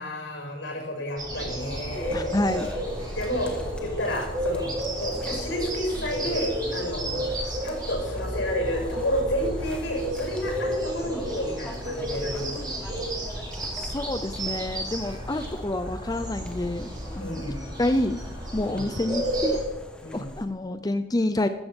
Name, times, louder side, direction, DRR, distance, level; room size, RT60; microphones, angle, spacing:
voice 1, 0.0-2.4 3.1-3.5 3.8-4.7 5.0-7.3 7.6-12.7 17.2-17.6 18.6-18.9 20.0-20.3, equal, 80° left, 1 dB, 6.8 m, -31 dB
sound 1, 1.2-19.6, right 1 dB, 20° right, 5.8 m, -32 dB
sound 2, 1.9-20.5, left 1 dB, 5° left, 1.6 m, -44 dB
voice 2, 2.1-2.7 13.7-17.4 17.8-18.2 18.5-19.6 20.1-21.5, left 1 dB, 20° left, 9 dB, 0.6 m, -28 dB
14.5 x 14.5 x 5.4 m, 1.1 s
head